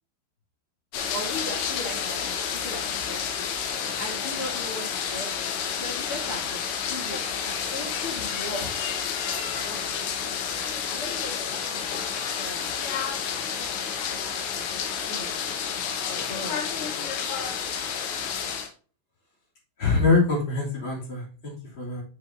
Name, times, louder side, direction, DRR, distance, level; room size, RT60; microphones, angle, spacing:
sound 1, 0.9-18.7, left 7 dB, 85° left, 3.5 m, -30 dB
voice 1, 1.0-2.3 2.6-3.5 4.0-5.3 5.8-6.6 6.9-8.8 9.5-12.8 13.6-15.4 16.1-17.0, left 1 dB, 55° left, -2 dB, 1.6 m, -39 dB
voice 2, 19.8-22.0, left 4 dB, 30° left, -3 dB, 3.1 m, -24 dB
9.1 x 6.9 x 2.7 m, 0.40 s
omnidirectional pair, 5.2 m